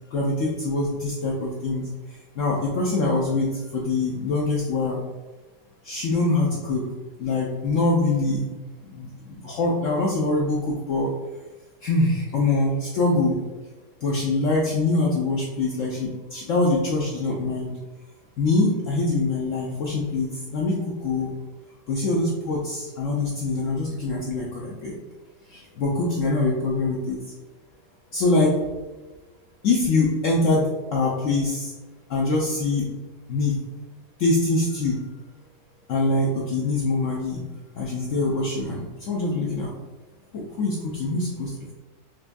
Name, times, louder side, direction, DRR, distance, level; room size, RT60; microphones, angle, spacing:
voice 1, 0.1-1.9 2.4-5.0 5.8-6.9 7.2-8.5 8.8-11.1 11.8-13.4 14.0-17.7 18.4-20.7 21.0-21.3 21.9-24.9 25.5-27.2 28.1-28.6 29.6-31.7 32.1-32.9 33.3-33.6 34.2-35.0 35.9-37.4 37.7-39.7 40.3-41.7, left 2 dB, 75° left, -3 dB, 0.7 m, -24 dB
4.6 x 2.5 x 2.2 m, 1.2 s
omnidirectional pair, 1.9 m